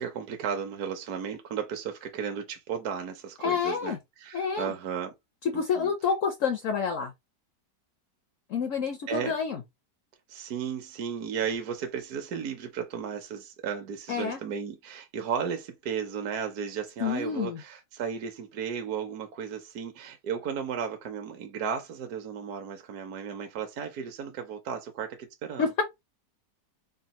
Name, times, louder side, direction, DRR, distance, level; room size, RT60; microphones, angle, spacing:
voice 1, 0.0-5.1 5.5-5.9 9.1-9.3 10.3-25.7, right 7 dB, 65° right, 1.1 m, -34 dB
voice 2, 3.4-4.0 4.3-4.7 5.4-7.1 8.5-9.6 14.1-14.4 17.0-17.6 25.6-25.8, left 6 dB, 65° left, 0.8 m, -28 dB
3.8 x 2.2 x 4.1 m
omnidirectional pair, 1.9 m